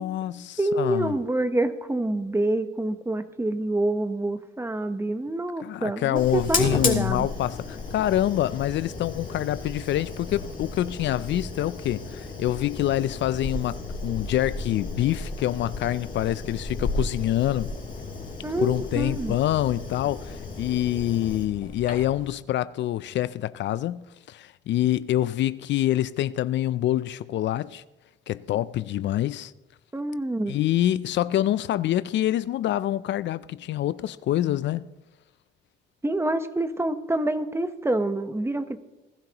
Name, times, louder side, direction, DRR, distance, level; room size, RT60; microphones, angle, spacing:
voice 1, 0.0-1.2 5.6-17.7 18.6-27.8 28.3-29.5 30.5-34.8, left 13 dB, 65° left, 0.4 m, -26 dB
voice 2, 0.6-7.3 18.4-19.4 29.9-30.6 36.0-38.8, right 1 dB, 15° right, 0.9 m, -27 dB
Fire, 6.2-22.3, left 3 dB, 45° left, 2.6 m, -34 dB
20.0 x 12.0 x 2.9 m
cardioid pair, 90°, 20 cm